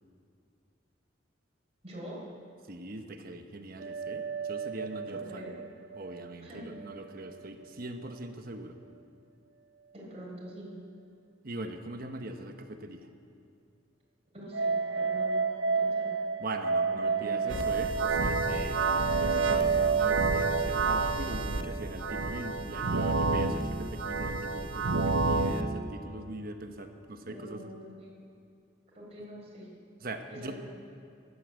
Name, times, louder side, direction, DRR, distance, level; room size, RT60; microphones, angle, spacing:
voice 1, 1.8-2.2 5.1-5.5 6.4-6.7 9.9-10.8 14.3-16.1 16.8-17.8 22.9-23.1 27.3-28.1 28.9-29.7 30.3-30.7, equal, 35° right, -4 dB, 4.3 m, -45 dB
voice 2, 2.7-5.5 5.9-8.8 11.4-13.1 16.4-27.6 30.0-30.5, right 2 dB, 50° right, 6 dB, 1.0 m, -41 dB
sound 1, 3.8-7.0 7.2-7.3 14.5-22.5, right 5 dB, 65° right, 0.5 m, -31 dB
sound 2, 17.5-25.6, right 3 dB, 90° right, 0.8 m, -30 dB
13.5 x 11.5 x 8.1 m, 2.4 s
head